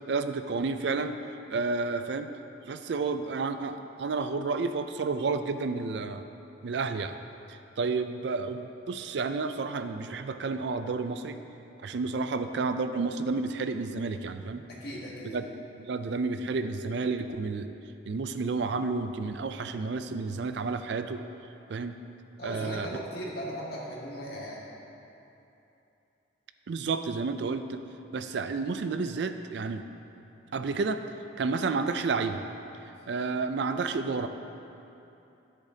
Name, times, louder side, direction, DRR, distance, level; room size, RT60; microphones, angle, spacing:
voice 1, 0.1-1.1 1.5-2.3 2.7-6.2 6.6-7.1 7.5-11.4 11.8-14.6 15.3-15.4 15.8-17.7 18.1-21.2 21.7-22.0 22.4-22.9 26.7-27.8 28.1-29.8 30.5-31.0 31.4-32.4 33.1-34.3, right 4 dB, 65° right, 9 dB, 0.4 m, -31 dB
voice 2, 14.7-15.4 22.4-24.6, equal, 55° left, -5 dB, 1.8 m, -37 dB
12.0 x 10.5 x 2.8 m, 2.9 s
head